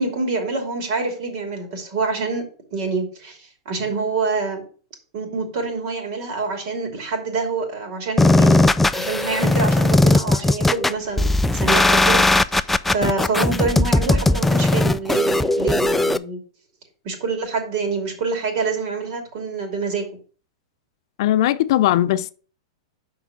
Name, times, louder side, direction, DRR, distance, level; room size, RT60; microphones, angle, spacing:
voice 1, 0.0-2.4 2.7-3.4 3.6-4.6 5.1-12.2 12.5-16.4 17.0-20.1, right 4 dB, 55° right, 2.8 m, -26 dB
sound 1, 8.2-16.2, left 2 dB, 5° left, 0.3 m, -18 dB
voice 2, 21.2-22.3, left 13 dB, 60° left, 0.5 m, -18 dB
5.9 x 4.8 x 5.9 m
hypercardioid pair, 125°, 3 cm